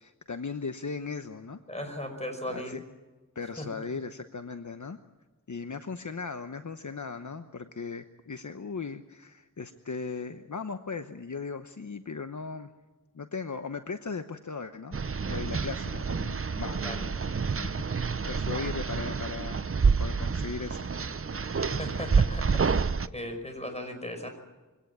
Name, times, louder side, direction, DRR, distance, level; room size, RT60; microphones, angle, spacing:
voice 1, 0.0-1.6 2.5-2.8 3.3-5.0 5.5-12.7 13.1-15.0 15.3-17.1 17.5-20.9, left 4 dB, 60° left, 8 dB, 1.0 m, -38 dB
voice 2, 1.7-2.8 3.6-3.7 16.8-17.1 21.5-24.3, left 1 dB, 20° left, 5 dB, 5.7 m, -37 dB
sound 1, 14.9-23.1, right 5 dB, 40° right, 0.7 m, -28 dB
23.5 x 17.5 x 8.7 m, 1.2 s
wide cardioid pair, 70°, 33 cm